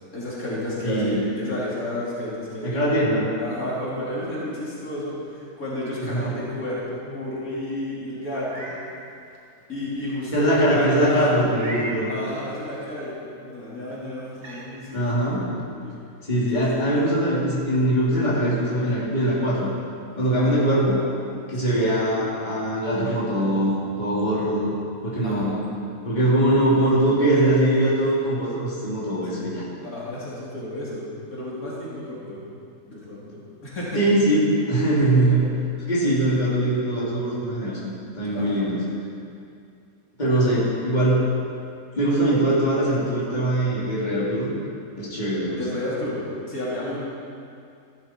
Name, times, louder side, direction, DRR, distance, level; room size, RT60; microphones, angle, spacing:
voice 1, 0.1-3.1 3.4-8.7 9.7-11.3 12.1-15.2 15.8-16.4 16.8-16.9 20.2-20.5 21.5-21.8 25.2-25.6 29.3-29.5 29.8-32.6 32.9-34.1 38.3-38.7 45.5-47.0, left 1 dB, 70° left, -8 dB, 3.5 m, -32 dB
voice 2, 0.8-1.2 2.6-3.3 6.1-6.4 10.3-12.1 14.9-15.4 16.3-19.7 20.2-21.0 21.5-24.7 25.0-25.6 26.0-29.6 33.9-35.4 35.8-38.8 40.2-41.2 41.9-44.5 45.0-45.6, right 1 dB, 30° left, -8 dB, 3.1 m, -22 dB
Meow, 8.3-8.8 9.3-9.4 11.5-12.1 13.7-13.8 14.3-14.6, right 1 dB, 50° right, 2.2 m, -36 dB
15.0 x 12.0 x 4.5 m, 2.4 s
omnidirectional pair, 1.5 m